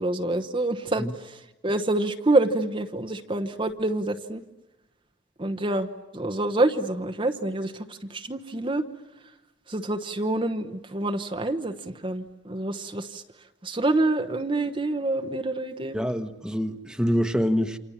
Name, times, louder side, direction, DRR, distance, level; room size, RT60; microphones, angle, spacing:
voice 1, 0.0-1.4 1.6-4.4 5.4-5.9 6.1-8.8 9.7-13.2 13.6-16.0, right 2 dB, 30° right, 5 dB, 1.1 m, -27 dB
voice 2, 15.9-17.8, equal, 5° right, 8 dB, 1.3 m, -25 dB
29.0 x 26.5 x 7.4 m, 1.0 s
head